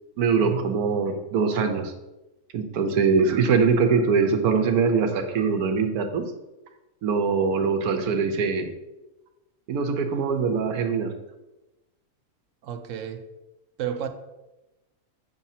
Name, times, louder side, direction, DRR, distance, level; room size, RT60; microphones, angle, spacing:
voice 1, 0.2-1.9 2.5-6.2 7.0-8.7 9.7-11.1, right 5 dB, 85° right, 1.2 m, -22 dB
voice 2, 12.6-13.2 13.8-14.1, right 9 dB, 65° right, 0.9 m, -31 dB
7.5 x 2.7 x 5.7 m
omnidirectional pair, 1.6 m